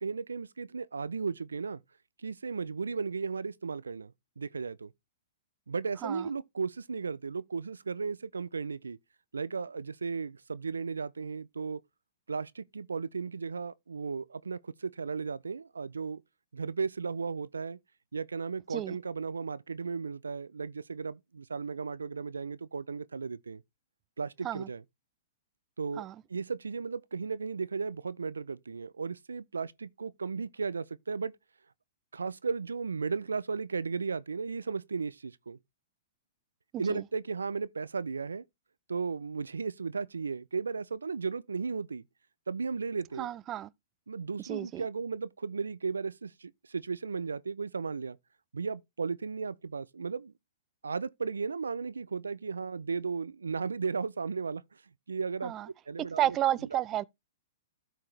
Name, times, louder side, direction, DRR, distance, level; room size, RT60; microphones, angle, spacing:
voice 1, 0.0-1.8 2.2-4.9 5.7-9.0 9.3-11.8 12.3-16.2 16.5-17.8 18.1-23.6 24.2-24.8 25.8-31.3 32.1-35.6 36.8-38.4 38.9-42.0 42.5-43.3 44.1-48.2 48.5-50.3 50.8-54.6 55.1-55.5 55.9-56.2 56.7-56.8, right 5 dB, 90° right, 0.4 m, -35 dB
voice 2, 43.2-43.7 44.4-44.8 55.4-55.7 56.2-57.0, right 12 dB, 30° right, 0.4 m, -31 dB
13.0 x 4.6 x 3.2 m
hypercardioid pair, 120°, 0 cm